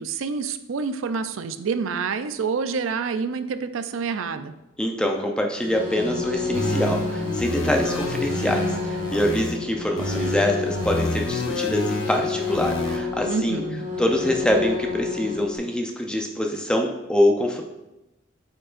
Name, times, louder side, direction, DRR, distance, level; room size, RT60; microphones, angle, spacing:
voice 1, 0.0-4.5 13.3-13.8, right 5 dB, 80° right, 10 dB, 0.4 m, -27 dB
voice 2, 4.8-13.6 14.0-17.6, left 1 dB, 5° left, 2 dB, 0.5 m, -24 dB
sound 1, 5.6-15.6, left 5 dB, 35° right, 1.5 m, -30 dB
sound 2, 6.5-9.5 10.0-13.0, left 1 dB, 90° left, 0.8 m, -29 dB
8.6 x 4.5 x 2.5 m, 0.97 s
head